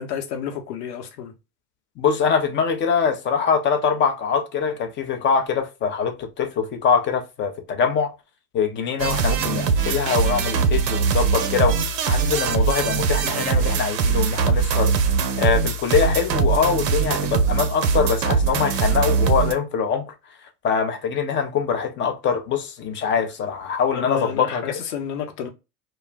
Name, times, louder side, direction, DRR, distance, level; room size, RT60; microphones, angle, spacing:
voice 1, 0.0-1.3 23.9-25.5, left 8 dB, 65° left, 0.8 m, -30 dB
voice 2, 2.0-8.1 8.5-20.1 20.6-24.6, left 6 dB, 25° left, 0.5 m, -23 dB
sound 1, 9.0-19.5, right 5 dB, 75° right, 0.7 m, -21 dB
2.2 x 2.0 x 3.3 m
hypercardioid pair, 85°, 50 cm